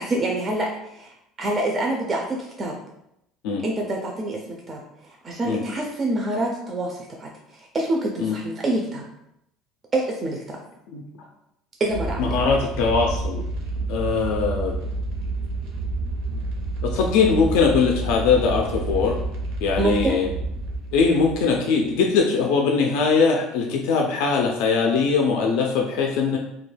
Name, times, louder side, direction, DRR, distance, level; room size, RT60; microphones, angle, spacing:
voice 1, 0.0-2.7 3.6-4.4 4.7-9.0 9.9-10.6 11.8-12.4 19.8-20.2, right 2 dB, 25° right, 0 dB, 0.3 m, -26 dB
sound 1, 11.9-21.9, right 3 dB, 80° right, 0.6 m, -29 dB
voice 2, 12.2-13.5 13.9-14.7 16.8-19.2 19.6-20.3 20.9-26.4, left 5 dB, 75° left, 1 dB, 0.3 m, -21 dB
2.2 x 2.1 x 3.2 m, 0.80 s
cardioid pair, 145°, 0 cm